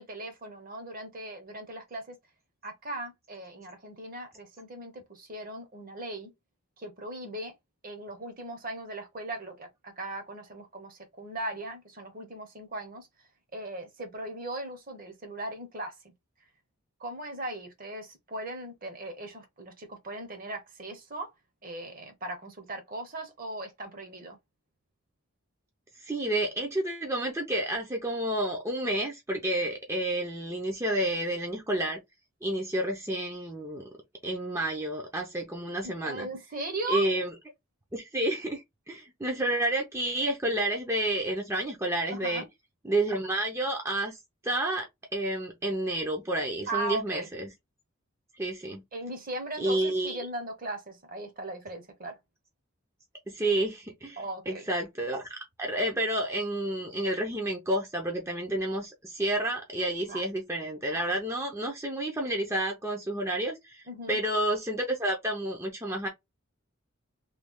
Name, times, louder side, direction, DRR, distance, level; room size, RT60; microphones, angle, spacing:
voice 1, 0.0-2.2 2.6-6.3 6.8-7.5 7.8-13.1 13.5-16.0 17.0-21.3 21.6-24.4 35.8-37.0 42.1-42.4 46.7-47.3 48.9-52.2 54.2-54.6 60.1-60.3 63.9-64.2, right 1 dB, 40° right, 0.9 m, -38 dB
voice 2, 26.0-32.0 32.4-33.9 34.2-36.3 36.9-37.3 37.9-42.4 42.8-44.2 44.4-47.5 48.3-48.8 49.6-50.3 53.3-66.1, right 1 dB, 15° right, 0.6 m, -30 dB
3.2 x 2.3 x 3.6 m
head